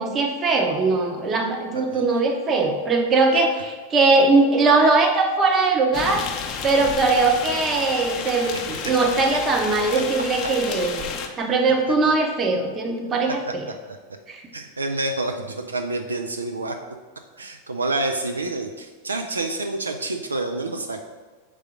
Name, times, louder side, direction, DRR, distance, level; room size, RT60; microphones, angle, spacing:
voice 1, 0.0-6.3 6.6-13.7 14.3-14.4, right 3 dB, 25° right, 3 dB, 0.9 m, -20 dB
sound 1, 5.9-11.3, left 6 dB, 35° left, 0.6 m, -32 dB
voice 2, 14.5-16.8 17.4-21.0, right 2 dB, 75° right, 4 dB, 0.4 m, -28 dB
4.8 x 3.7 x 5.7 m, 1.4 s
figure-of-eight pair, 90°, 0 cm